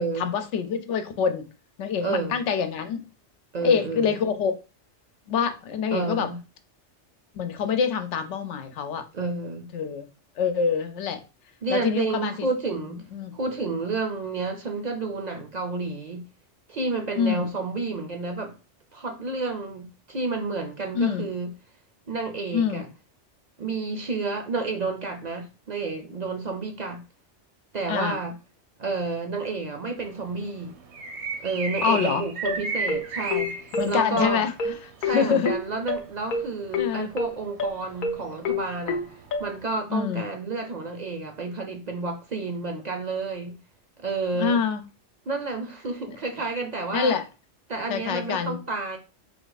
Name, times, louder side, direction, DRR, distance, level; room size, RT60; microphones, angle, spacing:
voice 1, 0.0-1.4 1.8-3.0 3.6-4.5 5.3-6.3 7.4-9.0 9.7-10.1 10.4-11.2 11.7-12.5 13.1-13.3 17.1-17.5 20.9-21.3 22.5-22.8 27.9-28.2 31.8-32.2 33.7-34.7 35.0-35.5 36.8-37.1 39.9-40.2 44.4-44.8 46.9-47.2 47.9-48.6, left 6 dB, 90° left, 0.9 m, -25 dB
voice 2, 2.0-2.4 3.5-4.2 5.9-6.4 9.1-9.7 11.6-13.0 13.3-16.3 16.7-18.5 18.9-21.5 22.1-22.9 23.6-27.0 27.7-28.3 28.8-30.8 31.4-34.5 35.0-39.0 39.4-43.6 44.0-44.6 45.3-47.2 47.7-49.0, right 3 dB, 50° right, 0.6 m, -30 dB
sound 1, 30.0-39.6, right 4 dB, 70° right, 1.0 m, -35 dB
sound 2, 32.4-39.5, left 3 dB, 55° left, 0.6 m, -28 dB
3.7 x 2.5 x 3.9 m
omnidirectional pair, 1.2 m